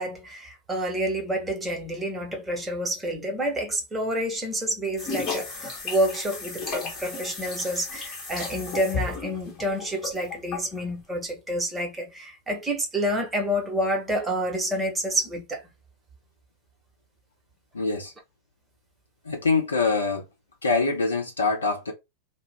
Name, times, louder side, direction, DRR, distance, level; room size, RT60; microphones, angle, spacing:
voice 1, 0.0-15.6, equal, 15° right, 0.9 m, -28 dB
sound 1, 5.0-10.8, left 4 dB, 35° left, 1.1 m, -34 dB
voice 2, 17.7-18.1 19.2-20.3 20.6-21.9, left 4 dB, 75° left, 0.7 m, -24 dB
2.3 x 2.1 x 3.3 m
figure-of-eight pair, 90°, 0 cm